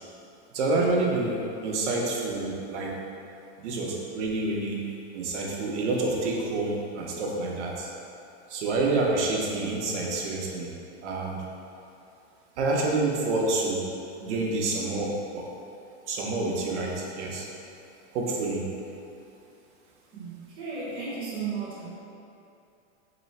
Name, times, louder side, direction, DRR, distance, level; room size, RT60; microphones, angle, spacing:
voice 1, 0.5-2.9 3.6-4.8 5.1-7.9 8.5-10.7 11.0-11.4 12.6-13.9 14.2-15.4 16.1-17.5 18.1-18.6, right 2 dB, 70° right, -2 dB, 0.9 m, -28 dB
voice 2, 20.1-21.9, right 5 dB, 15° right, -8 dB, 0.5 m, -34 dB
3.1 x 3.0 x 4.2 m, 2.7 s
supercardioid pair, 175°, 36 cm